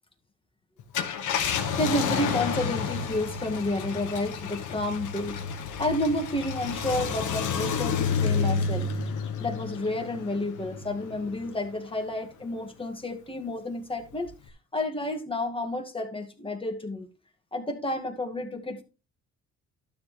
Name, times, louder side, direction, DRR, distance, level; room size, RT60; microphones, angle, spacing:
Car, 0.8-11.6 12.1-12.2 14.3-14.5, left 6 dB, 80° left, 1.5 m, -30 dB
voice 1, 1.8-8.9 9.4-14.3 14.7-17.1 17.5-18.8, left 1 dB, 15° left, 2.0 m, -30 dB
12.0 x 7.1 x 3.2 m
cardioid pair, 90°, 30 cm